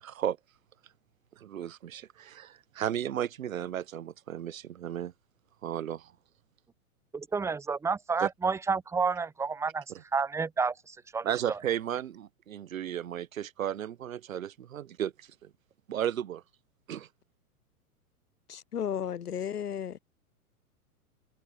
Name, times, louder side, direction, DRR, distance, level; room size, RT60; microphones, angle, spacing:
voice 1, 0.0-0.4 1.4-5.1 5.6-6.1 8.2-8.3 9.9-10.0 11.2-15.5 15.9-16.4 16.9-17.1, right 10 dB, 60° right, 1.1 m, -34 dB
voice 2, 7.1-9.8 10.1-11.6, right 5 dB, 5° right, 0.9 m, -30 dB
voice 3, 18.5-20.0, left 9 dB, 85° left, 0.6 m, -34 dB
figure-of-eight pair, 105°, 45 cm